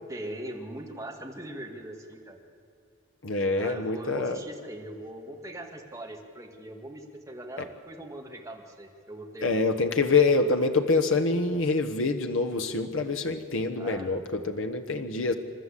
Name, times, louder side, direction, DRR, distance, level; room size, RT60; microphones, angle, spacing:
voice 1, 0.1-2.4 3.5-9.7 13.8-14.1, right 1 dB, 15° right, 1 dB, 2.1 m, -41 dB
voice 2, 3.2-4.4 9.4-15.3, left 3 dB, 85° left, 5 dB, 1.2 m, -25 dB
28.0 x 12.5 x 8.5 m, 2.7 s
head